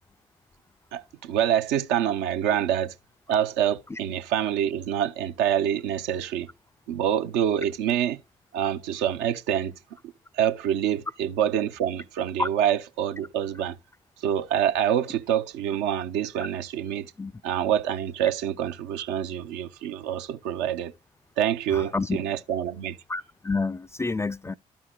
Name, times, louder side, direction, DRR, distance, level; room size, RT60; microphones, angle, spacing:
voice 1, 0.9-2.9 3.3-6.5 6.9-8.2 8.5-9.7 10.3-13.8 14.2-17.1 17.4-20.9 21.4-23.0, right 10 dB, 65° right, 0.6 m, -26 dB
voice 2, 21.7-22.2 23.1-24.6, left 3 dB, 15° left, 0.3 m, -28 dB
13.0 x 4.8 x 2.2 m
figure-of-eight pair, 40°, 19 cm